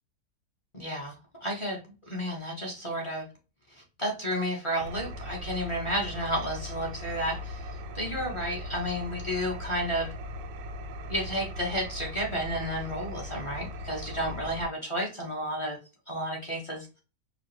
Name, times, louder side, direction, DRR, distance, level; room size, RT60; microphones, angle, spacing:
voice 1, 0.7-1.1 1.4-1.8 2.1-3.2 3.8-7.7 7.9-10.1 11.1-15.8 16.1-16.9, equal, 20° left, -2 dB, 0.9 m, -32 dB
Engine, 4.8-14.6, left 1 dB, 90° right, 1.2 m, -39 dB
5.0 x 2.4 x 3.2 m, 0.33 s
omnidirectional pair, 1.8 m